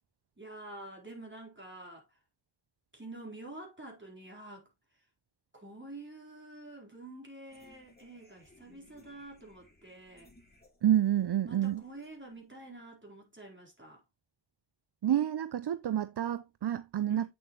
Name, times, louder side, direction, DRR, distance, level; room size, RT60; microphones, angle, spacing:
voice 1, 0.4-2.2 2.9-4.7 5.5-10.3 11.4-14.0 17.0-17.3, right 2 dB, 25° right, 4.3 m, -48 dB
sound 1, 7.5-12.9, left 1 dB, 20° left, 2.6 m, -62 dB
voice 2, 10.8-11.8 15.0-17.3, right 11 dB, 65° right, 0.5 m, -29 dB
8.5 x 6.8 x 3.1 m
wide cardioid pair, 55°, 43 cm